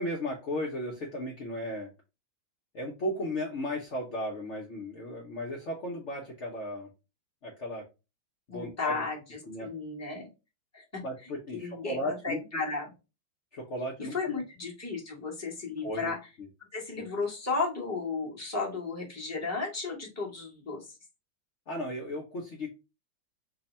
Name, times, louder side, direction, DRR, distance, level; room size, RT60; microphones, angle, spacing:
voice 1, 0.0-1.9 2.7-6.9 7.4-7.9 8.5-9.0 9.5-9.7 11.0-12.4 13.5-14.4 15.8-16.1 17.0-17.1 21.7-22.7, left 1 dB, 70° left, -1 dB, 0.6 m, -35 dB
voice 2, 8.5-10.3 10.7-12.9 14.0-16.2 16.7-20.9, left 4 dB, 10° left, -4 dB, 0.9 m, -34 dB
3.4 x 2.1 x 4.1 m, 0.28 s
omnidirectional pair, 2.2 m